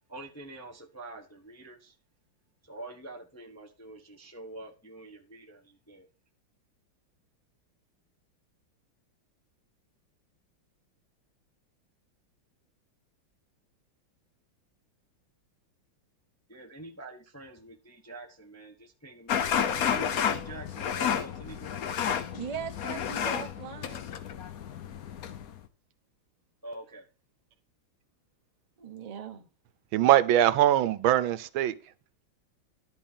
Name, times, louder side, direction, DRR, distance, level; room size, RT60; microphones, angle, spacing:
voice 1, 0.1-2.0 2.6-6.1 16.5-21.7 26.6-27.1, right 2 dB, 15° left, 0.5 m, -46 dB
sound 1, 19.3-25.6, left 8 dB, 60° left, 1.0 m, -31 dB
voice 2, 22.3-24.1 28.8-29.5, right 7 dB, 50° right, 0.4 m, -39 dB
voice 3, 29.9-31.7, right 12 dB, 80° right, 1.4 m, -22 dB
11.0 x 4.1 x 7.2 m
omnidirectional pair, 2.2 m